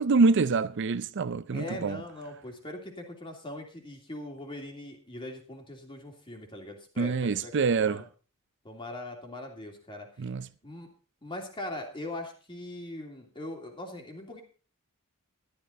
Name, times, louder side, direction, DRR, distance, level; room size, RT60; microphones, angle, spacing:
voice 1, 0.0-2.0 7.0-8.0 10.2-10.5, right 4 dB, 55° right, 0.5 m, -25 dB
voice 2, 1.5-8.0 8.6-10.1 10.6-10.9 11.2-14.4, left 1 dB, 25° left, 2.9 m, -41 dB
13.0 x 12.0 x 4.1 m
head